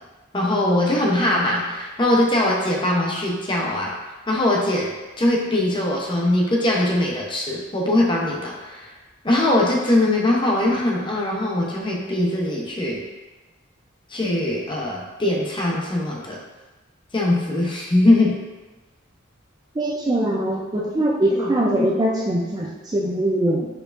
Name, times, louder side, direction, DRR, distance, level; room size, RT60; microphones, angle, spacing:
voice 1, 0.3-3.9 4.3-8.9 9.2-13.0 14.1-16.4 17.1-18.4 21.4-21.9, left 1 dB, 25° left, -2 dB, 0.7 m, -21 dB
voice 2, 19.8-23.7, right 1 dB, 20° right, -3 dB, 0.4 m, -22 dB
4.6 x 4.5 x 2.5 m, 1.1 s
head